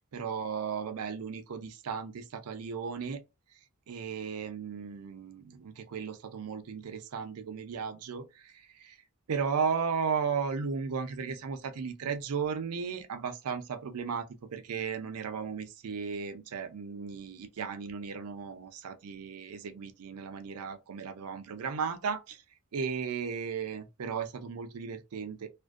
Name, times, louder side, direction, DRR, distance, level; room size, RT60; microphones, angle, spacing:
voice 1, 0.1-3.2 3.9-9.0 9.3-22.4 22.7-25.5, right 6 dB, 75° right, 0.5 m, -35 dB
2.5 x 2.1 x 2.3 m
head